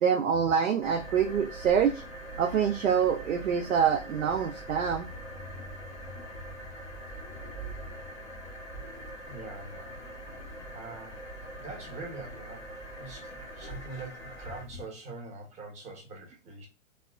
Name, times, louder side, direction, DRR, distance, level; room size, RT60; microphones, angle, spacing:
voice 1, 0.0-2.0 2.4-5.1, right 7 dB, 90° right, 0.5 m, -26 dB
sound 1, 0.8-14.9, right 1 dB, 10° left, 0.4 m, -42 dB
voice 2, 9.3-10.0 10.7-11.3 11.6-16.7, right 3 dB, 20° right, 0.8 m, -44 dB
2.8 x 2.1 x 2.3 m
hypercardioid pair, 120°, 39 cm